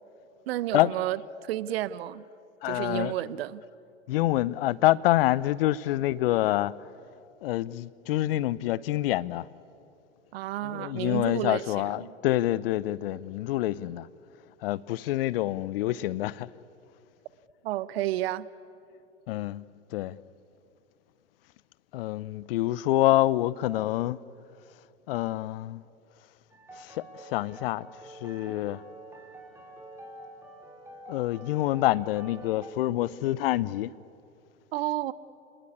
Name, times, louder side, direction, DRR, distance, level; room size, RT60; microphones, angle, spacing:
voice 1, 0.5-2.2 2.6-3.6 10.3-12.1 17.6-18.5 34.7-35.1, right 14 dB, 55° right, 0.9 m, -31 dB
voice 2, 2.6-3.1 4.1-6.7 7.4-9.5 10.6-14.1 14.6-16.5 19.3-19.7 19.9-20.2 21.9-24.2 25.1-25.8 26.7-28.8 31.1-33.9, left 15 dB, 50° left, 0.7 m, -27 dB
sound 1, 26.5-32.7, right 1 dB, 5° right, 4.9 m, -47 dB
28.5 x 20.0 x 9.7 m
hypercardioid pair, 100°, 36 cm